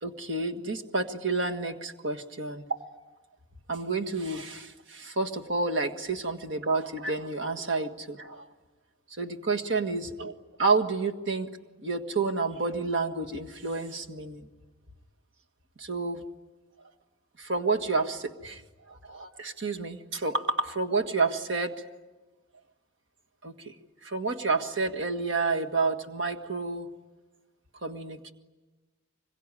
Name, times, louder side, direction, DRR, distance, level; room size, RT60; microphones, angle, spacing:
voice 1, 0.0-2.8 3.7-8.4 9.2-10.3 10.6-11.5 11.8-14.5 15.8-16.2 17.4-18.6 18.9-21.8 23.4-23.7 24.0-26.9 27.8-28.3, right 3 dB, 60° right, 4 dB, 1.7 m, -30 dB
25.5 x 22.5 x 9.9 m, 1.2 s
head